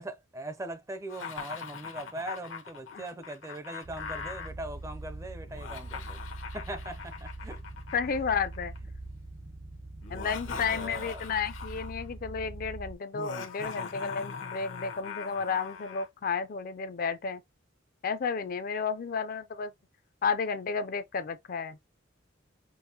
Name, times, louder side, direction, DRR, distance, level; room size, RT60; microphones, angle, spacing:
voice 1, 0.0-6.2 6.5-7.6 10.5-11.2, right 1 dB, 15° right, 0.4 m, -40 dB
Laughter, 1.1-4.5 5.5-8.8 10.0-12.0 13.1-16.1, left 6 dB, 85° left, 0.9 m, -41 dB
sound 1, 3.8-12.9, right 2 dB, 85° right, 2.9 m, -43 dB
voice 2, 7.9-8.7 10.1-17.4 18.0-19.7 20.2-21.8, left 5 dB, 45° left, 0.4 m, -32 dB
5.3 x 2.1 x 2.7 m
head